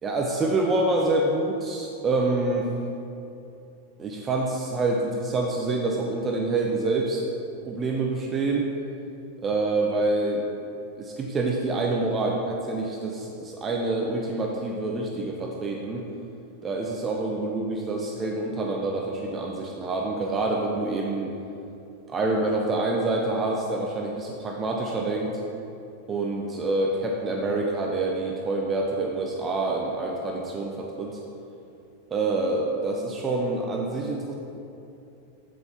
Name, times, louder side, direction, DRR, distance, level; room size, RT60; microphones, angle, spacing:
voice 1, 0.0-2.7 4.0-7.2 7.7-8.7 9.4-10.5 11.0-16.0 16.6-21.4 22.1-25.4 26.1-31.2 32.1-34.3, right 2 dB, 20° right, 0 dB, 0.6 m, -26 dB
7.7 x 7.6 x 2.8 m, 2.7 s
figure-of-eight pair, 90°, 0 cm